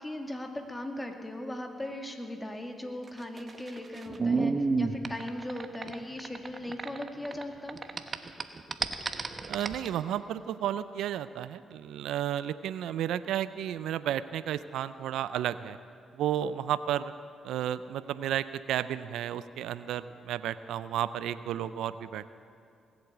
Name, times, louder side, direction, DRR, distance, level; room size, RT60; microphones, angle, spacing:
voice 1, 0.0-7.8, left 1 dB, 15° left, 4 dB, 2.2 m, -38 dB
sound 1, 3.1-7.4 7.7-9.9, right 4 dB, 40° right, 1.0 m, -31 dB
voice 2, 9.5-15.8 16.2-17.1 17.4-22.3, right 11 dB, 80° right, 14 dB, 0.4 m, -32 dB
19.5 x 8.2 x 8.1 m, 2.5 s
supercardioid pair, 60°, 0 cm